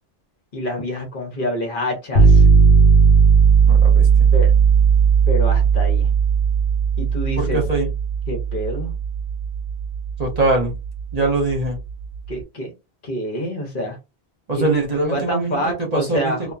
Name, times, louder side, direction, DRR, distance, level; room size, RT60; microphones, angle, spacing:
voice 1, 0.5-2.5 4.3-4.5 5.3-6.1 7.0-7.6 8.3-9.0 12.3-12.7 13.0-14.0 14.6-14.7 15.1-16.5, equal, 55° left, 1.1 m, -26 dB
sound 1, 2.2-12.0, right 6 dB, 85° left, 0.9 m, -16 dB
voice 2, 3.7-4.3 7.4-7.9 10.2-10.7 11.1-11.8 14.5-15.6 15.9-16.3, right 2 dB, 40° right, 0.9 m, -22 dB
2.8 x 2.3 x 2.4 m
omnidirectional pair, 1.1 m